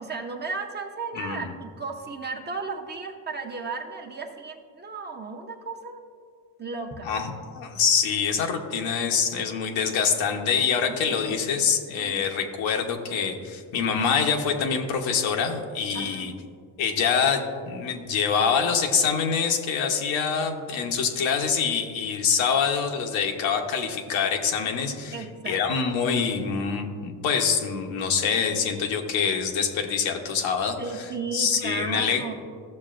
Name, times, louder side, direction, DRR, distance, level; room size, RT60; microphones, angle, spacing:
voice 1, 0.0-6.0 6.6-7.1 10.9-11.5 11.9-12.2 15.9-16.3 21.2-21.3 25.1-25.6 30.8-32.3, right 4 dB, 20° right, 2 dB, 0.8 m, -35 dB
voice 2, 1.1-1.5 7.0-16.3 16.8-25.1 25.5-30.8 31.3-32.2, left 6 dB, 80° left, 3 dB, 1.1 m, -25 dB
14.0 x 6.6 x 2.5 m, 2.1 s
cardioid pair, 110°, 46 cm